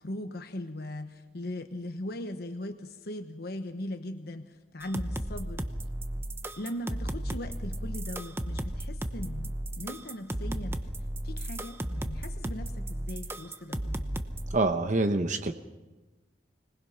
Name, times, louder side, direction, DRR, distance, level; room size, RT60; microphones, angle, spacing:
voice 1, 0.0-5.7 6.6-10.8 11.2-14.0, left 1 dB, 60° left, 6 dB, 1.1 m, -39 dB
sound 1, 4.8-14.6, right 1 dB, 15° right, 0.9 m, -34 dB
voice 2, 14.5-15.5, right 2 dB, 45° right, 7 dB, 0.9 m, -26 dB
25.0 x 19.0 x 5.7 m, 1.1 s
head